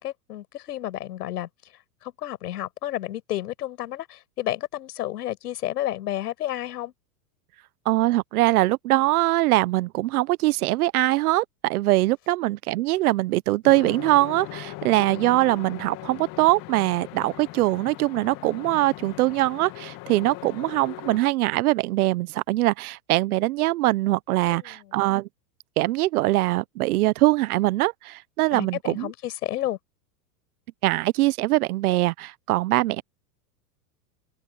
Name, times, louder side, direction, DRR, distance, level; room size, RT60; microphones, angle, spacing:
voice 1, 0.0-1.5 2.0-6.9 24.5-24.9 28.5-29.8, left 13 dB, 75° left, 6.7 m, -31 dB
voice 2, 7.9-25.3 25.8-29.1 30.8-33.0, right 18 dB, 65° right, 1.0 m, -22 dB
sound 1, 13.6-21.2, left 20 dB, 45° left, 2.2 m, -39 dB
open air
hypercardioid pair, 125°, 47 cm